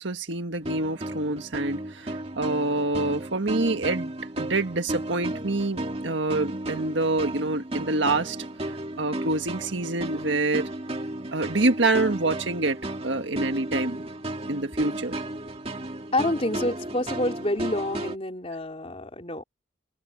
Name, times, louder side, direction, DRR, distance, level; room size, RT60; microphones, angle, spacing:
voice 1, 0.0-4.1 4.4-8.4 9.0-10.7 11.3-12.8 13.0-14.0 14.5-15.2, right 2 dB, 65° right, 1.7 m, -26 dB
sound 1, 0.6-18.2, right 1 dB, 30° right, 2.7 m, -34 dB
voice 2, 16.1-19.4, left 1 dB, 30° left, 3.6 m, -28 dB
head